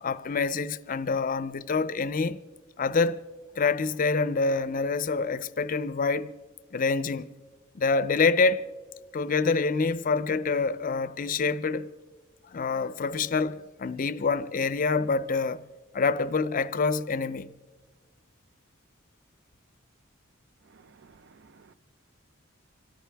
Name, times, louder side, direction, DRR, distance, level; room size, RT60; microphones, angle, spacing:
voice 1, 0.0-2.4 2.8-3.2 3.6-6.3 6.7-7.3 7.7-8.7 9.1-11.9 12.5-15.6 15.9-17.5, left 4 dB, 40° left, 0.5 m, -26 dB
voice 2, 20.7-21.7, right 5 dB, 60° right, 0.5 m, -56 dB
25.5 x 13.5 x 3.4 m
head